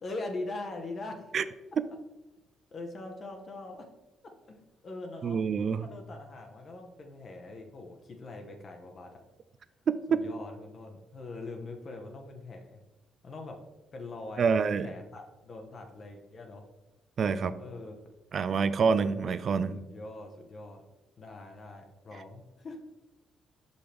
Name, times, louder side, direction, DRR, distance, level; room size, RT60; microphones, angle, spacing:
voice 1, 0.0-1.3 2.7-3.8 4.5-5.4 5.8-9.2 10.1-12.8 13.2-13.6 13.9-16.6 17.6-18.0 19.7-20.8 21.2-22.8, left 2 dB, 45° left, 3 dB, 1.0 m, -42 dB
voice 2, 5.2-5.9 9.9-10.2 14.4-14.9 17.2-17.5 18.3-19.8, right 5 dB, 55° right, 13 dB, 0.4 m, -27 dB
6.0 x 5.3 x 3.4 m, 1.1 s
cardioid pair, 90°, 0 cm